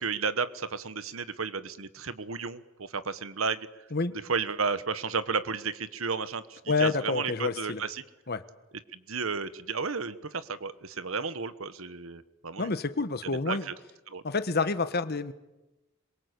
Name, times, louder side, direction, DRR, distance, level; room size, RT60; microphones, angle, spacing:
voice 1, 0.0-3.7 4.3-8.0 8.9-12.7 13.5-13.7 14.1-14.2, right 5 dB, 75° right, 14 dB, 1.3 m, -33 dB
voice 2, 6.7-7.8 8.3-8.4 12.6-13.7 14.2-15.3, left 4 dB, 50° left, 12 dB, 1.3 m, -28 dB
26.5 x 23.0 x 8.3 m, 1.0 s
head